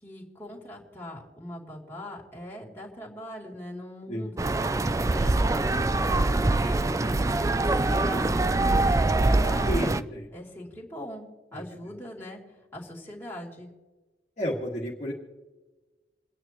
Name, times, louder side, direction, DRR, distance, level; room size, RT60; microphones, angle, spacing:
voice 1, 0.0-7.2 7.5-9.8 10.3-12.4 12.7-13.7, left 1 dB, 10° left, -4 dB, 2.9 m, -41 dB
sound 1, 4.4-10.0, right 2 dB, 15° right, 0.3 m, -24 dB
voice 2, 9.7-10.3 14.4-15.1, equal, 40° left, -4 dB, 1.9 m, -31 dB
29.0 x 9.8 x 3.0 m, 1.2 s
head